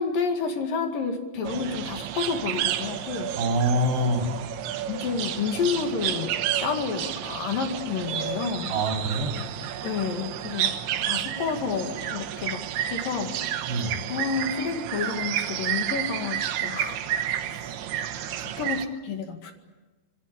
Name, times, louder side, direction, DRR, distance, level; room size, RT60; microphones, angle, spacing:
voice 1, 0.0-3.3 4.9-6.3 6.6-8.7 9.8-10.7 11.0-13.3 14.1-17.0 17.5-17.7 18.0-19.5, left 5 dB, 55° left, 5 dB, 3.4 m, -30 dB
sound 1, 1.4-18.9, right 11 dB, 90° right, 3.5 m, -31 dB
voice 2, 3.4-4.3 8.7-9.4 13.7-14.0, right 1 dB, 70° right, 3 dB, 5.4 m, -25 dB
26.5 x 22.5 x 8.7 m, 1.2 s
omnidirectional pair, 5.1 m